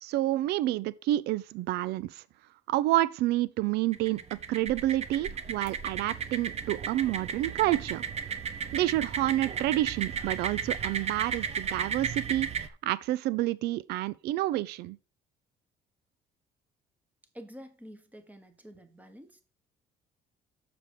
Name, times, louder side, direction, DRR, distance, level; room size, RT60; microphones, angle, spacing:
voice 1, 0.0-2.2 2.7-4.2 4.5-8.0 8.7-12.5 12.8-15.0, right 15 dB, 75° right, 0.4 m, -29 dB
sound 1, 3.9-12.7, right 6 dB, 40° right, 0.9 m, -34 dB
voice 2, 17.3-19.4, equal, 10° right, 1.5 m, -48 dB
7.5 x 6.8 x 4.8 m
cardioid pair, 110°, 17 cm